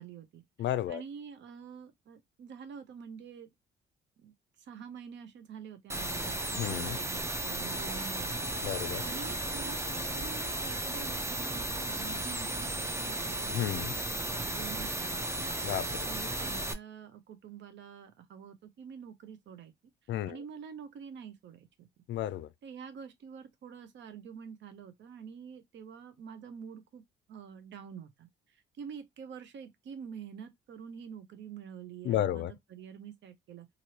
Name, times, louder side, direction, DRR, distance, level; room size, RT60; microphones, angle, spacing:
voice 1, 0.0-0.4 0.9-3.5 4.2-8.5 9.0-15.4 16.0-19.7 20.0-21.9 22.6-27.0 27.3-33.7, right 7 dB, 65° right, 0.7 m, -47 dB
voice 2, 0.6-1.0 6.6-7.0 8.6-9.0 13.5-13.9 15.6-16.1 20.1-20.4 22.1-22.5 32.0-32.5, left 12 dB, 65° left, 0.4 m, -32 dB
sound 1, 5.9-16.7, right 1 dB, 15° right, 0.5 m, -35 dB
3.0 x 2.6 x 2.8 m
cardioid pair, 90°, 20 cm